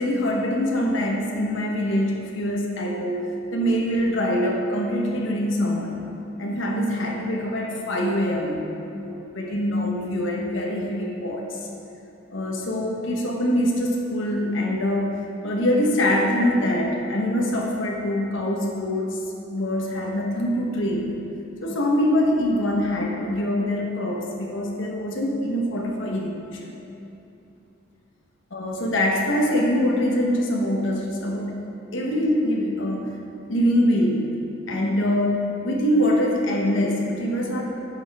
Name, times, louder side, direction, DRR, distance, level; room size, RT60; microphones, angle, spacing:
voice 1, 0.0-6.0 6.4-11.6 12.3-15.1 15.4-19.2 19.5-21.1 21.6-26.8 28.5-31.6 31.9-33.2 33.5-34.3 34.7-37.6, equal, 75° left, -1 dB, 1.2 m, -24 dB
10.5 x 7.0 x 3.6 m, 2.8 s
head